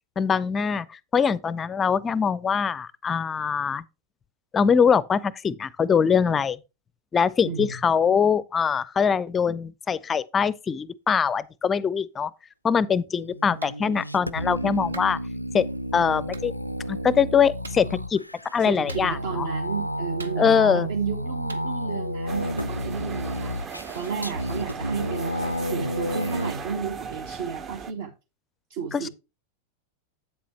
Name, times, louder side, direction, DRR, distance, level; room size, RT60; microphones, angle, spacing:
voice 1, 0.2-3.8 4.5-6.6 7.1-12.3 12.6-15.2 15.5-15.7 15.9-16.5 16.9-18.2 18.5-19.4 20.4-20.9, left 6 dB, 20° left, 0.4 m, -23 dB
voice 2, 7.4-7.8 18.6-25.3 25.6-28.1 28.7-29.1, right 6 dB, 55° right, 1.2 m, -33 dB
sound 1, 13.2-26.5, equal, 90° left, 0.4 m, -31 dB
Clapping, 13.6-13.8 14.9-15.1 16.3-16.5 17.6-17.9 18.9-19.4 20.2-20.8 21.5-21.7, right 4 dB, 75° right, 0.8 m, -43 dB
sound 2, 22.3-27.9, right 6 dB, 25° right, 0.7 m, -37 dB
8.4 x 7.5 x 3.2 m
figure-of-eight pair, 90°, 0 cm